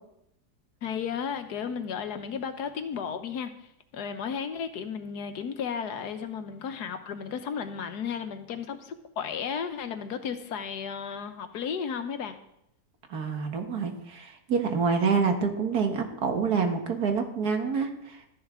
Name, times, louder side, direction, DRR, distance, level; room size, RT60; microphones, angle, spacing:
voice 1, 0.8-3.5 3.9-12.4, left 7 dB, 75° left, 9 dB, 1.4 m, -34 dB
voice 2, 13.1-18.2, right 5 dB, 70° right, 5 dB, 1.9 m, -27 dB
13.5 x 10.5 x 3.7 m, 0.78 s
omnidirectional pair, 1.7 m